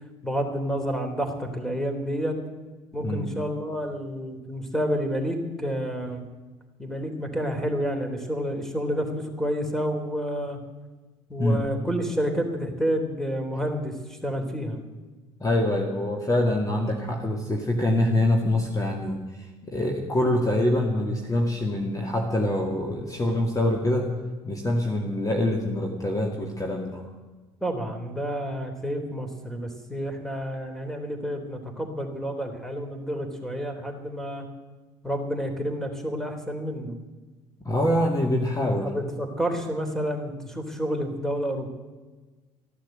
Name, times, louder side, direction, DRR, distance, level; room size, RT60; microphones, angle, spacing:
voice 1, 0.2-2.4 2.9-6.2 6.8-10.6 11.3-14.8 27.6-34.5 35.0-37.0 38.8-41.7, equal, 5° left, 5 dB, 3.5 m, -29 dB
voice 2, 15.4-24.1 24.4-27.1 37.6-38.9, left 1 dB, 20° left, 1 dB, 2.3 m, -25 dB
14.5 x 11.5 x 7.9 m, 1.2 s
hypercardioid pair, 60°, 15 cm